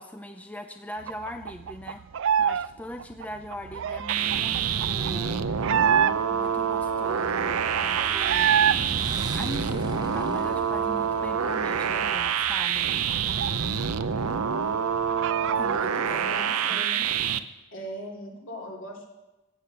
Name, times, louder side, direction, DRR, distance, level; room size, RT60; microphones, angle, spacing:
voice 1, 0.0-2.0 2.4-5.5 6.3-8.6 9.3-12.9 15.5-16.4 16.7-16.8, left 1 dB, 5° left, 6 dB, 0.5 m, -40 dB
sound 1, 1.1-2.7 2.9-6.5 6.9-7.0 7.2-8.8 9.1-10.8 11.2-11.3 11.6-14.0 14.3-14.4 14.7-15.9, right 8 dB, 60° right, 0.4 m, -27 dB
sound 2, 4.1-17.4, right 7 dB, 85° right, 0.7 m, -27 dB
Motorcycle / Engine, 6.0-13.0, right 1 dB, 20° right, 1.4 m, -41 dB
voice 2, 16.2-17.0 17.7-19.1, equal, 60° left, -1 dB, 3.4 m, -39 dB
15.5 x 8.6 x 6.9 m, 1.0 s
head